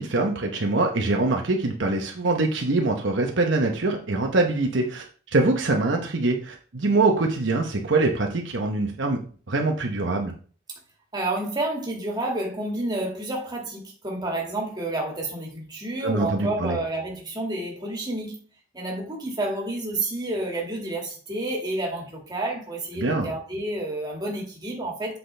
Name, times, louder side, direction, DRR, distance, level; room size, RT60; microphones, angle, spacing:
voice 1, 0.0-10.3 16.0-16.8 23.0-23.3, right 2 dB, 60° right, 0.9 m, -24 dB
voice 2, 11.1-18.3 18.7-25.2, right 1 dB, 20° right, 2.1 m, -30 dB
7.9 x 5.9 x 3.4 m
head